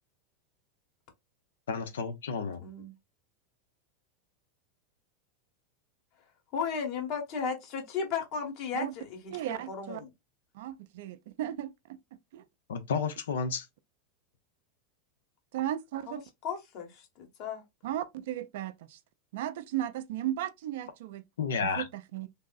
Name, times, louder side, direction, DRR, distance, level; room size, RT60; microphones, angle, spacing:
voice 1, 1.7-2.6 12.7-13.7 21.4-21.8, left 5 dB, 75° left, 0.5 m, -31 dB
voice 2, 2.6-2.9 6.5-10.1 16.4-17.6, left 6 dB, 50° left, 1.2 m, -35 dB
voice 3, 9.3-10.0 10.5-12.0 12.3-12.4 15.5-16.2 17.8-19.0 19.3-21.2 21.8-22.3, right 12 dB, 65° right, 0.4 m, -35 dB
3.3 x 2.5 x 2.3 m
hypercardioid pair, 90°, 0 cm